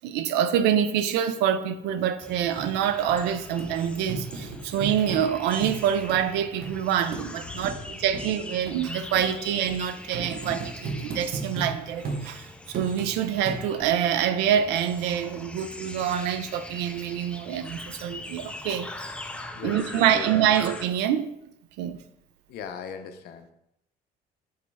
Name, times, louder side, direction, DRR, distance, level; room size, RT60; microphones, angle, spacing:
voice 1, 0.0-18.9 19.6-21.3 21.8-22.0, right 9 dB, 90° right, 0.4 m, -26 dB
sound 1, 2.2-20.9, left 1 dB, 5° left, 0.3 m, -42 dB
sound 2, 2.6-2.7 3.1-3.2 3.6-3.7 4.1-5.2 5.6-5.8 6.1-6.2 6.6-6.7 7.1-7.3 7.6-7.8 8.1-8.3 8.7-8.8 9.1-9.3 9.7-9.8 10.1-11.7 12.0-12.2 12.7-13.1 13.5-13.9 14.4-14.5, right 4 dB, 65° right, 0.8 m, -34 dB
voice 2, 7.4-7.9 19.5-20.6 22.5-23.5, left 6 dB, 70° left, 0.5 m, -39 dB
4.8 x 3.0 x 3.4 m
cardioid pair, 110°, 17 cm